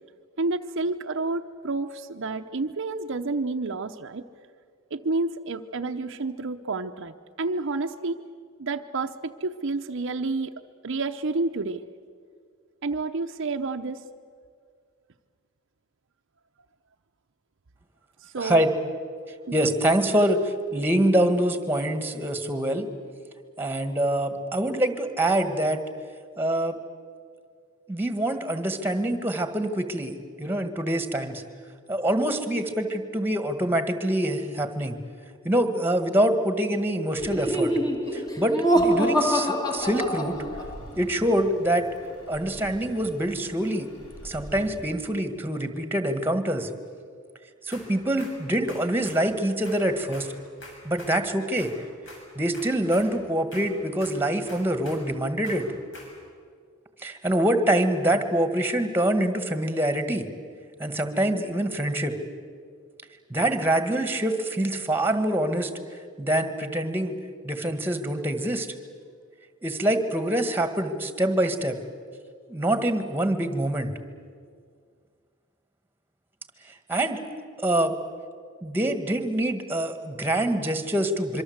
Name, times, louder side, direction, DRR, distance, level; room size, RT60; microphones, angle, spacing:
voice 1, 0.4-4.2 4.9-8.2 8.6-10.5 10.8-11.8 12.8-14.0 18.2-18.7 19.5-19.7, right 3 dB, 60° right, 6 dB, 0.8 m, -29 dB
voice 2, 18.4-18.7 19.5-22.9 23.6-25.8 26.4-26.8 27.9-31.4 31.9-35.0 35.4-37.7 38.1-40.4 40.9-41.9 42.3-43.9 44.2-46.7 47.6-50.3 50.8-51.7 52.4-55.7 57.0-60.3 60.8-62.2 63.3-65.7 66.2-67.1 67.4-68.7 69.6-71.8 72.5-73.9 76.9-77.2 77.6-77.9 78.6-81.4, right 1 dB, 10° right, 8 dB, 1.7 m, -25 dB
Laughter, 37.2-40.9, equal, 20° left, 2.2 m, -25 dB
sound 1, 39.8-44.8, equal, 85° left, 5.6 m, -45 dB
sound 2, 47.7-48.4 48.7-49.2 49.6-51.2 51.6-51.7 52.0-52.3 52.5-53.1 53.5-53.7 54.0-55.1 55.4-56.2, left 2 dB, 60° left, 7.0 m, -46 dB
25.5 x 24.0 x 8.0 m, 2.1 s
head